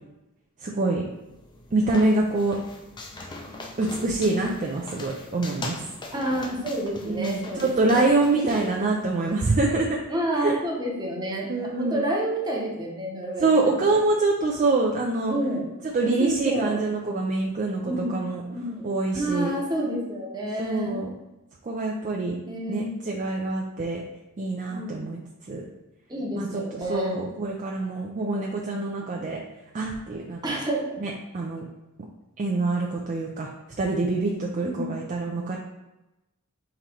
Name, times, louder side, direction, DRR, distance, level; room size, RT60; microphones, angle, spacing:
voice 1, 0.6-1.0 1.7-2.6 3.8-5.8 7.0-9.9 10.4-10.6 11.5-12.0 13.4-15.3 15.9-18.4 18.8-19.5 20.6-21.1 21.6-22.4 22.7-24.0 24.4-25.2 25.5-25.6 26.3-26.6 26.9-29.4 29.7-30.6 31.0-31.6 32.4-33.5 33.8-35.6, right 3 dB, 35° right, -1 dB, 0.4 m, -25 dB
sound 1, 1.2-9.4, left 2 dB, 20° left, 0.5 m, -41 dB
voice 2, 6.1-8.8 9.7-9.8 10.1-14.0 15.3-15.7 16.2-16.8 17.8-18.9 19.1-21.0 22.5-23.0 24.7-25.1 26.1-27.2 30.4-30.8 34.6-34.9, right 1 dB, 20° right, -2 dB, 0.9 m, -29 dB
3.8 x 3.0 x 4.3 m, 0.97 s
head